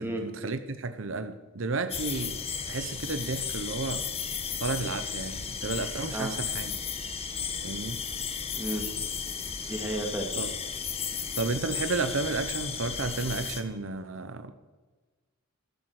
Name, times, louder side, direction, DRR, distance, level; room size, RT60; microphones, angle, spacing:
voice 1, 0.0-2.4 2.7-4.0 4.6-6.7 7.6-8.0 10.3-10.5 11.4-14.5, right 3 dB, 70° right, 10 dB, 0.8 m, -32 dB
sound 1, 1.9-13.6, left 6 dB, 30° left, 1.2 m, -34 dB
voice 2, 8.6-8.9 9.7-10.3, right 1 dB, 10° right, 1 dB, 2.4 m, -32 dB
14.0 x 12.0 x 6.5 m, 1.3 s
head